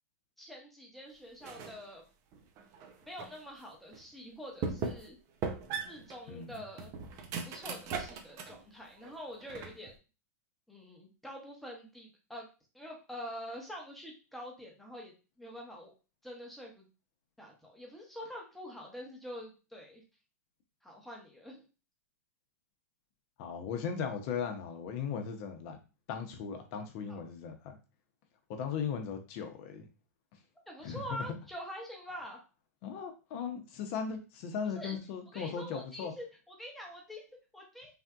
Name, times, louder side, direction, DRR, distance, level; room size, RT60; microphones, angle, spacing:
voice 1, 0.4-2.0 3.1-5.1 5.9-6.9 7.4-9.9 10.7-12.5 12.7-15.9 16.2-16.9 17.4-20.0 20.8-21.6 27.1-27.2 30.7-32.4 34.8-35.0 35.3-38.0, equal, ahead, -1 dB, 0.9 m, -46 dB
sound 1, 1.4-1.8 2.3-3.4 3.9-4.0 4.6-5.1 5.4-8.6 9.0-9.9, right 5 dB, 35° right, 0.5 m, -39 dB
voice 2, 23.4-25.8 26.1-27.8 28.5-29.9 30.8-31.4 32.8-36.1, left 6 dB, 45° left, 5 dB, 0.7 m, -37 dB
3.4 x 2.5 x 2.3 m, 0.32 s
hypercardioid pair, 125°, 9 cm